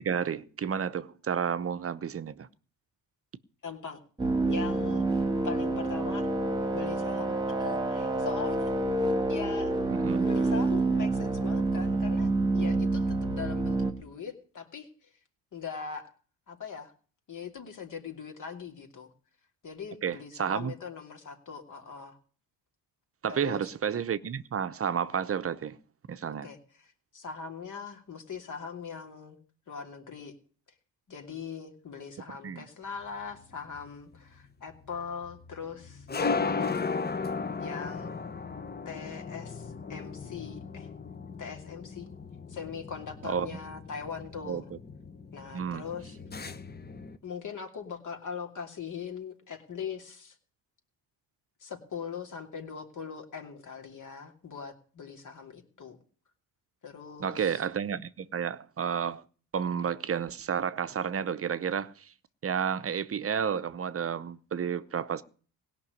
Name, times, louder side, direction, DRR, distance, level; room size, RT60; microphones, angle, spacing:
voice 1, 0.0-2.5 9.9-10.3 20.0-20.7 23.2-25.8 26.1-26.5 32.4-32.7 43.2-43.5 44.5-44.8 45.5-45.8 57.2-59.2 59.5-62.1 62.4-65.2, right 7 dB, 35° right, 0.8 m, -31 dB
voice 2, 3.6-4.0 4.5-5.0 5.4-6.3 6.7-8.7 9.3-9.7 10.2-15.1 15.5-16.1 16.5-16.9 17.3-19.1 19.6-22.2 23.3-23.7 26.4-29.4 29.7-30.3 31.1-36.8 37.6-38.1 38.8-40.9 41.4-42.1 42.5-44.7 45.3-46.2 47.2-50.4 51.6-56.0 56.8-57.6, left 6 dB, 50° left, 2.8 m, -41 dB
sound 1, 4.2-13.9, right 2 dB, 10° right, 1.8 m, -28 dB
sound 2, 33.1-47.2, left 4 dB, 25° left, 1.0 m, -36 dB
17.0 x 6.0 x 9.5 m
supercardioid pair, 80°, 39 cm